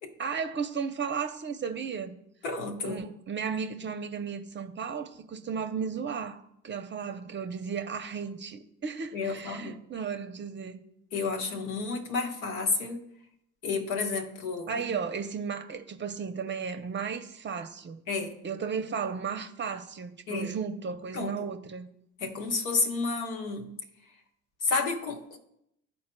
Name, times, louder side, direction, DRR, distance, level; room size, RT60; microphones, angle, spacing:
voice 1, 0.2-2.2 2.8-10.8 14.7-18.0 18.4-21.9, right 6 dB, 30° right, 0.6 m, -34 dB
voice 2, 2.4-3.0 9.1-9.8 11.1-13.0 13.6-15.0 18.1-18.3 20.3-20.5 21.1-21.5 22.2-23.7 24.6-25.4, left 4 dB, 80° left, 1.0 m, -31 dB
12.0 x 4.2 x 2.2 m
hypercardioid pair, 65°, 40 cm